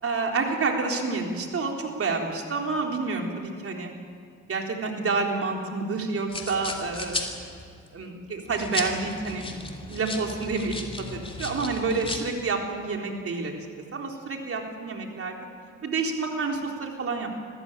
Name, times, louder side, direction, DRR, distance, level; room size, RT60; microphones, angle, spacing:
voice 1, 0.0-3.9 4.5-7.3 7.9-9.5 9.9-10.8 11.1-13.5 13.9-15.4 15.8-17.3, right 4 dB, 50° right, 1 dB, 3.8 m, -28 dB
sound 1, 6.3-7.9 8.5-12.2, left 2 dB, 20° left, 3.0 m, -35 dB
26.0 x 15.0 x 8.9 m, 2.2 s
cardioid pair, 90°, 30 cm